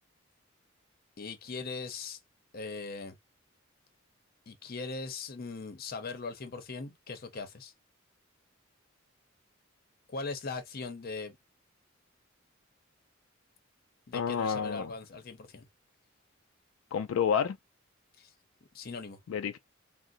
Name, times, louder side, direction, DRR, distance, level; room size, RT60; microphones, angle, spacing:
voice 1, 1.2-2.2 2.5-3.2 4.5-7.7 10.1-11.4 14.1-15.7 18.2-18.3 18.7-19.2, left 4 dB, 50° left, 0.7 m, -40 dB
voice 2, 14.1-14.9 16.9-17.6 19.3-19.6, left 7 dB, 80° left, 0.3 m, -29 dB
3.7 x 2.1 x 2.4 m
head